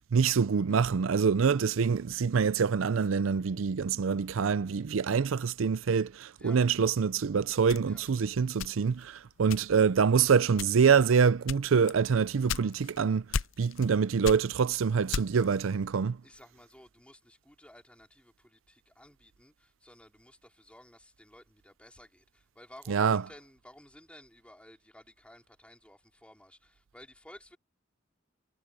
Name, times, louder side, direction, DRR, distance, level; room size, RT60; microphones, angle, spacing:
voice 1, 0.0-13.2 13.6-16.2 22.9-23.2, right 6 dB, 85° right, 0.5 m, -25 dB
sound 1, 7.7-9.1 9.5-10.0 10.5-11.0 11.5-13.0 13.3-13.9 14.2-15.5, left 6 dB, 80° left, 0.5 m, -35 dB
voice 2, 16.2-27.6, left 1 dB, 5° left, 4.1 m, -55 dB
head